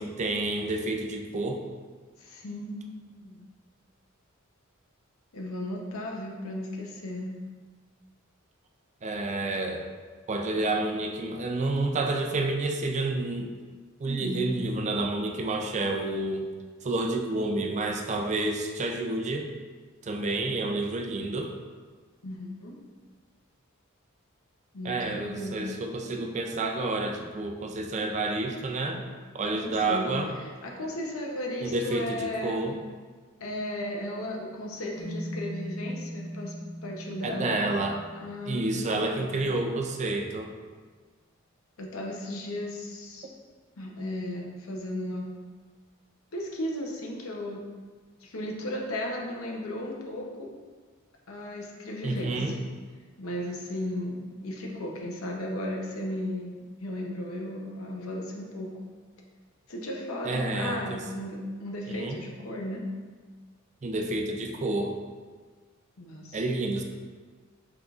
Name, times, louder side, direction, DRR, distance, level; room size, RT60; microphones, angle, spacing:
voice 1, 0.0-1.6 9.0-9.8 10.3-13.5 14.0-16.4 16.8-19.5 20.0-21.5 24.8-29.0 29.3-30.3 31.6-32.7 37.2-38.0 38.5-40.5 52.0-52.5 60.3-60.8 61.9-62.2 63.8-64.9 66.3-66.8, right 2 dB, 35° right, 3 dB, 0.4 m, -29 dB
voice 2, 2.2-3.5 5.3-7.4 14.0-14.5 22.2-22.8 24.7-25.6 29.5-30.1 30.3-32.8 33.4-36.5 36.8-37.6 38.1-39.3 41.8-43.3 43.8-45.3 46.3-47.6 48.2-50.5 51.3-52.6 53.2-56.5 56.8-58.7 59.7-62.8 66.0-66.4, left 1 dB, 70° left, 0 dB, 0.8 m, -35 dB
sound 1, 35.0-39.3, equal, 20° right, 1.0 m, -40 dB
5.8 x 3.6 x 2.4 m, 1.5 s
head